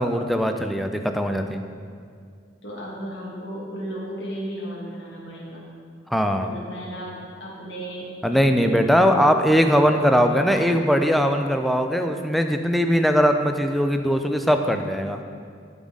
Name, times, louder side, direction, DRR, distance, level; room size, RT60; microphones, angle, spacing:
voice 1, 0.0-1.6 6.1-6.5 8.2-15.2, equal, ahead, 5 dB, 0.3 m, -20 dB
voice 2, 2.6-5.7 6.4-9.1 9.8-10.7, right 1 dB, 70° left, -5 dB, 1.6 m, -35 dB
11.5 x 3.9 x 3.7 m, 2.2 s
head